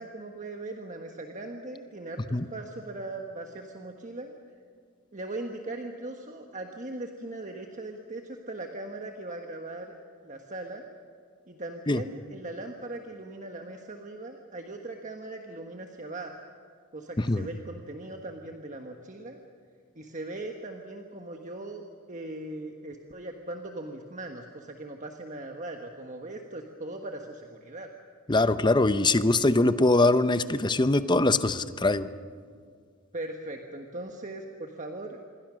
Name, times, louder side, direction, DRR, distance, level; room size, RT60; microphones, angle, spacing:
voice 1, 0.0-4.3 5.1-9.9 10.2-10.9 11.5-16.3 16.9-19.4 19.9-27.9 33.1-35.2, right 2 dB, 35° right, 3 dB, 1.4 m, -39 dB
voice 2, 28.3-32.1, left 2 dB, 20° left, 12 dB, 0.7 m, -22 dB
27.0 x 23.0 x 6.3 m, 2.1 s
head